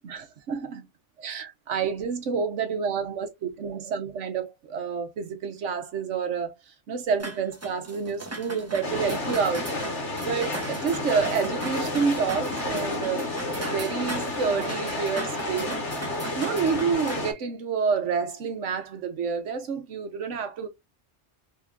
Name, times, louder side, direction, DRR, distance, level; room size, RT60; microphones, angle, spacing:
voice 1, 0.0-0.8 1.2-9.7 10.2-13.3 13.6-15.7 16.4-20.7, right 6 dB, 80° right, 1.2 m, -28 dB
sound 1, 7.2-17.2, right 2 dB, 15° right, 0.7 m, -39 dB
sound 2, 8.8-17.3, left 2 dB, 75° left, 1.6 m, -31 dB
3.6 x 3.6 x 2.4 m
omnidirectional pair, 1.2 m